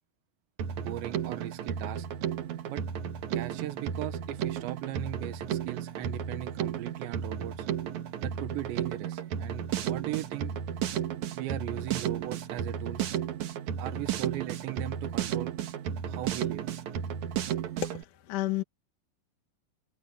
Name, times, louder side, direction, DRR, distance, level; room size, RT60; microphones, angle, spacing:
Drum kit, 0.6-18.0, right 9 dB, 60° right, 2.0 m, -33 dB
voice 1, 0.8-2.1 2.7-2.8 3.3-7.7 8.2-10.5 11.3-13.1 13.8-15.5 16.1-16.7, right 15 dB, 85° right, 3.5 m, -38 dB
voice 2, 17.8-18.6, left 13 dB, 60° left, 2.3 m, -31 dB
open air
omnidirectional pair, 5.0 m